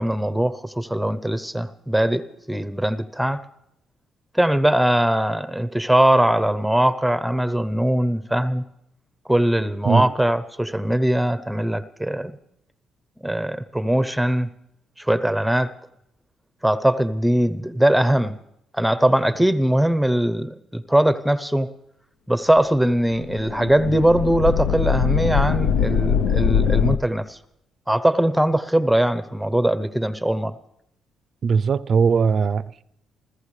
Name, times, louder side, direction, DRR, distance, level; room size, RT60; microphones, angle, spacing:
voice 1, 0.0-3.4 4.3-8.6 9.3-12.3 13.2-14.5 15.0-15.7 16.6-18.4 18.7-21.7 22.3-27.4 27.9-30.5, right 1 dB, ahead, 0.7 m, -21 dB
sound 1, 23.0-27.0, left 7 dB, 85° left, 0.6 m, -22 dB
voice 2, 31.4-32.8, right 5 dB, 50° right, 0.5 m, -20 dB
28.0 x 14.5 x 3.2 m
cardioid pair, 90°, 0 cm